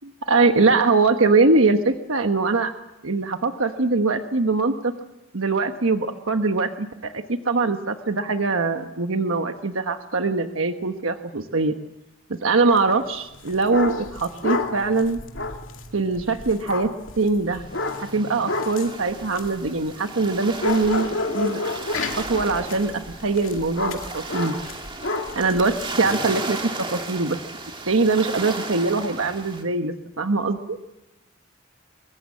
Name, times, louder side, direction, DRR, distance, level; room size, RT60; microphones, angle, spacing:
voice 1, 0.2-2.7 3.0-4.9 5.3-11.7 12.4-15.2 15.9-16.9 17.1-17.6 18.0-21.1 21.3-21.6 22.2-24.6 25.3-27.4 27.8-30.8, right 3 dB, 80° right, 7 dB, 1.2 m, -22 dB
sound 1, 12.7-12.9 13.3-20.3 20.6-26.2, left 2 dB, 70° left, 2.4 m, -30 dB
sound 2, 17.6-29.6, right 3 dB, 25° right, 2.8 m, -35 dB
24.5 x 23.0 x 7.4 m, 0.96 s
head